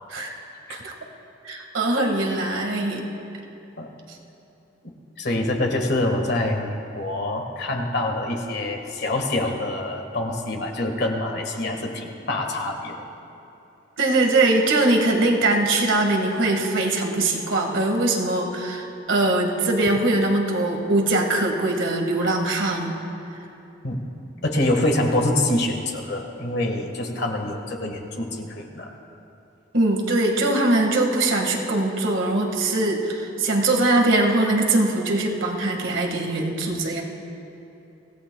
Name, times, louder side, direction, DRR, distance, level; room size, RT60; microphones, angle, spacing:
voice 1, 1.4-3.1 14.0-23.0 29.7-37.0, right 2 dB, 80° right, 2 dB, 1.8 m, -22 dB
voice 2, 5.2-13.0 23.8-24.1 24.4-28.9, left 1 dB, 60° left, 2 dB, 1.6 m, -25 dB
25.0 x 17.0 x 2.3 m, 2.9 s
head